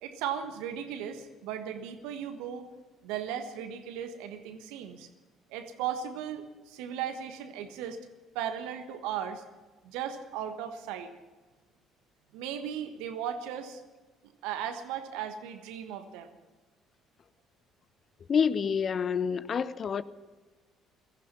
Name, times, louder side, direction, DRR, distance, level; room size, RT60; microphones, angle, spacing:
voice 1, 0.0-2.7 3.0-5.1 5.5-8.0 8.3-9.4 9.8-11.1 12.3-13.8 14.4-16.4, right 9 dB, 70° right, 1.3 m, -36 dB
voice 2, 18.3-20.0, left 6 dB, 45° left, 0.7 m, -27 dB
17.0 x 15.0 x 5.8 m
hypercardioid pair, 50°, 0 cm